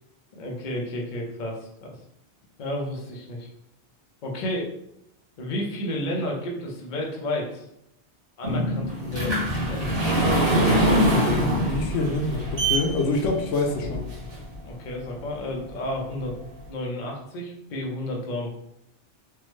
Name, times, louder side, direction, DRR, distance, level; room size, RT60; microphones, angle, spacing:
voice 1, 0.3-2.0 2.6-3.5 4.2-4.7 5.4-7.7 8.4-9.9 14.6-16.4 16.7-18.6, left 1 dB, 50° left, -1 dB, 0.7 m, -31 dB
sound 1, 8.4-14.6 15.1-15.2 15.8-15.9 16.2-16.3, equal, 55° right, 1.1 m, -23 dB
voice 2, 11.6-14.0, left 3 dB, 85° left, 3 dB, 0.9 m, -26 dB
3.4 x 2.1 x 3.1 m, 0.81 s
omnidirectional pair, 1.2 m